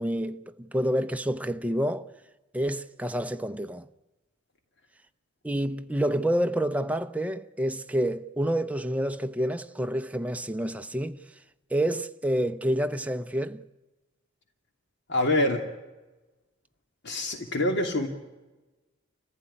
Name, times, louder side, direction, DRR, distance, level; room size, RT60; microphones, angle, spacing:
voice 1, 0.0-2.1 2.5-3.9 5.4-11.2 11.7-13.6, right 1 dB, 5° right, 0.7 m, -28 dB
voice 2, 15.1-15.6 17.0-18.1, left 1 dB, 60° left, 2.6 m, -25 dB
29.0 x 15.0 x 10.0 m
head